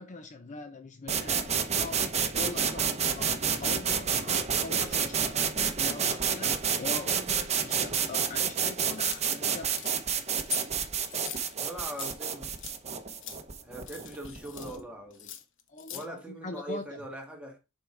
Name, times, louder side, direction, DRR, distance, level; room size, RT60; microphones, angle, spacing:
voice 1, 0.0-5.5 5.8-9.8 15.7-16.8, left 3 dB, 35° left, 0.7 m, -42 dB
sound 1, 1.1-14.8, right 7 dB, 30° right, 0.8 m, -29 dB
sound 2, 9.0-9.2 9.6-10.0 10.3-10.7 11.1-12.1 12.6-12.8 13.1-13.4 13.8-14.8 15.1-16.1, left 9 dB, 60° left, 1.0 m, -41 dB
voice 2, 11.6-12.5 13.6-15.3 15.9-17.6, right 1 dB, 5° right, 1.8 m, -41 dB
6.9 x 4.6 x 3.4 m
head